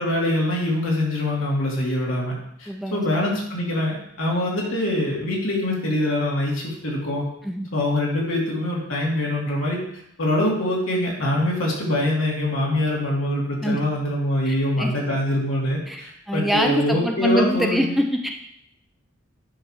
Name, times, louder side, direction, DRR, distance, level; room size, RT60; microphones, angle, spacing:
voice 1, 0.0-2.3 2.6-7.2 7.7-9.8 10.2-17.9, left 1 dB, 90° left, -3 dB, 2.4 m, -24 dB
voice 2, 2.7-3.0 7.4-7.7 13.6-13.8 14.5-14.9 15.9-18.3, equal, ahead, 2 dB, 0.5 m, -24 dB
9.8 x 3.3 x 6.0 m, 0.74 s
head